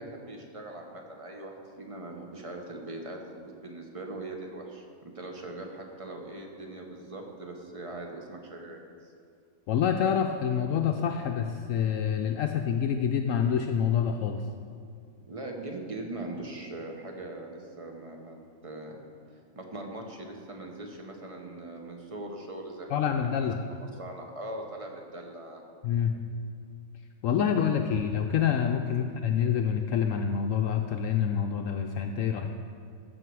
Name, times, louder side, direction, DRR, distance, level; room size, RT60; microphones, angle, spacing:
voice 1, 0.0-8.8 15.3-18.4 18.6-19.0 19.6-23.0 23.4-25.6 28.8-29.1, right 2 dB, 25° right, 2 dB, 1.0 m, -41 dB
voice 2, 9.7-14.4 22.9-23.6 25.8-26.1 27.2-32.6, left 8 dB, 70° left, 5 dB, 0.9 m, -27 dB
14.5 x 6.2 x 4.7 m, 2.3 s
omnidirectional pair, 1.5 m